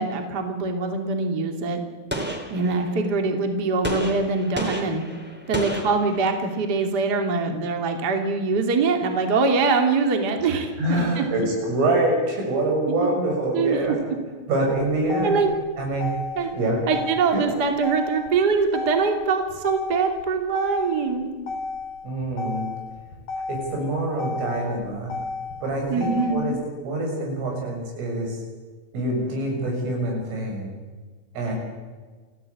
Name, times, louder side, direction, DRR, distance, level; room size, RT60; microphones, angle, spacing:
voice 1, 0.0-1.8 2.5-5.0 5.5-11.2 12.9-13.1 13.5-14.0 15.2-15.6 16.4-16.5 16.9-21.3 25.9-26.5, right 4 dB, 30° right, 4 dB, 2.3 m, -23 dB
Gunshot gunfire, 2.1-3.2 3.8-6.6, right 1 dB, 5° right, 2.1 m, -32 dB
voice 2, 10.4-13.9 14.5-15.4 15.8-16.8 17.3-17.4 22.0-22.7 23.5-25.1 25.6-26.6 26.8-28.4 28.9-30.7 31.4-31.5, right 1 dB, 85° right, 1 dB, 9.2 m, -25 dB
Motor vehicle (road), 14.7-26.7, left 3 dB, 50° left, 4.8 m, -34 dB
29.5 x 14.5 x 8.6 m, 1.4 s
omnidirectional pair, 5.6 m